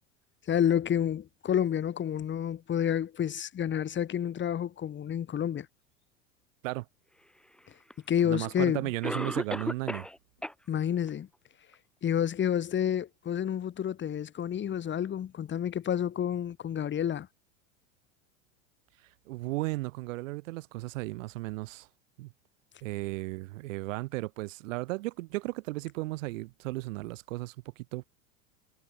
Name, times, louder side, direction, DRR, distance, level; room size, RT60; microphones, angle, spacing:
voice 1, 0.5-5.7 8.1-8.9 10.7-11.3 12.0-17.3, left 9 dB, 25° left, 2.0 m, -29 dB
Cough, 7.9-8.0 9.0-10.2 10.4-10.5 11.1-11.2 11.7-11.8, left 1 dB, ahead, 2.4 m, -33 dB
voice 2, 8.2-10.1 19.3-21.9 22.2-22.3 22.8-28.0, right 20 dB, 70° right, 2.8 m, -35 dB
hypercardioid pair, 105°, 40 cm